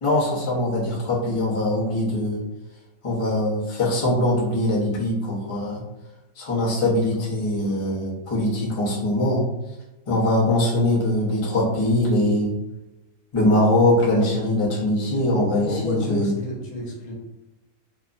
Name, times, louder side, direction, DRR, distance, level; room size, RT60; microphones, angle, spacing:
voice 1, 0.0-2.4 3.0-5.8 6.4-9.4 10.1-12.5 13.3-16.3, left 1 dB, 30° left, -7 dB, 0.6 m, -22 dB
voice 2, 15.1-17.1, left 1 dB, 80° left, -2 dB, 1.2 m, -31 dB
3.1 x 2.0 x 2.4 m, 1.0 s
omnidirectional pair, 1.5 m